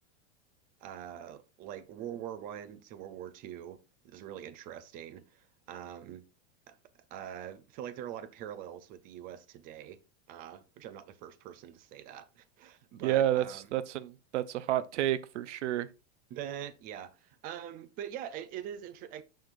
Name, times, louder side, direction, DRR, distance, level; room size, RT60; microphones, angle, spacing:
voice 1, 0.8-3.8 4.0-6.2 6.7-6.8 7.1-10.0 10.3-13.7 16.3-19.2, right 10 dB, 25° right, 0.5 m, -43 dB
voice 2, 13.0-15.9, right 12 dB, 90° right, 0.8 m, -30 dB
6.5 x 6.4 x 2.5 m
supercardioid pair, 155°, 35 cm